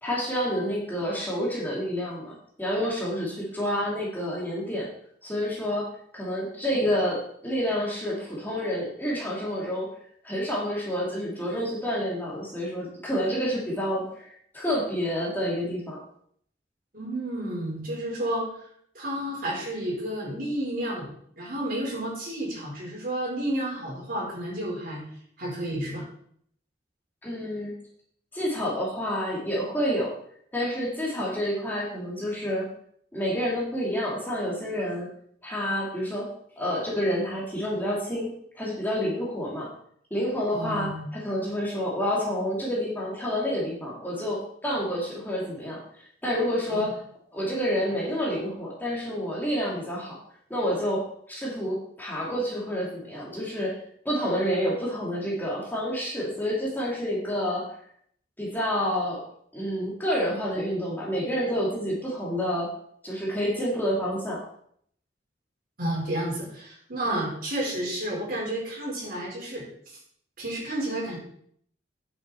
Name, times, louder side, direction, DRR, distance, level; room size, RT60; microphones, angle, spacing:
voice 1, 0.0-4.9 5.2-5.9 6.1-9.9 10.2-16.0 27.2-27.7 28.3-30.1 30.5-32.7 33.1-35.1 35.4-36.3 36.6-39.7 40.1-45.8 46.2-47.0 47.3-50.2 50.5-53.8 54.0-57.7 58.4-59.2 59.5-62.7 63.0-64.4 67.0-67.3, equal, 10° left, -5 dB, 2.4 m, -28 dB
voice 2, 16.9-18.5 18.9-25.0 25.4-26.1 40.5-41.1 46.7-46.8 65.8-70.0 70.4-71.2, right 1 dB, 55° right, -4 dB, 4.8 m, -31 dB
9.4 x 7.7 x 4.4 m, 0.65 s
head